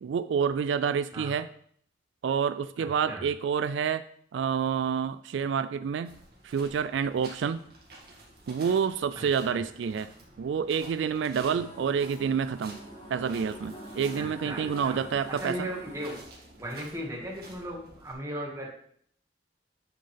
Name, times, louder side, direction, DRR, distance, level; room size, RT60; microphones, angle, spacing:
voice 1, 0.0-1.5 2.2-4.1 4.3-6.2 6.4-7.7 8.5-10.1 10.4-12.8 13.1-15.7, right 7 dB, 85° right, 13 dB, 0.3 m, -28 dB
voice 2, 2.8-3.2 9.5-9.6 14.2-15.0 15.4-16.2 16.5-18.7, equal, 15° right, -3 dB, 1.8 m, -37 dB
sound 1, 6.0-18.1, right 2 dB, 55° right, 2.1 m, -50 dB
sound 2, 11.3-16.2, equal, 35° left, 2.2 m, -45 dB
9.1 x 5.6 x 3.4 m, 0.63 s
head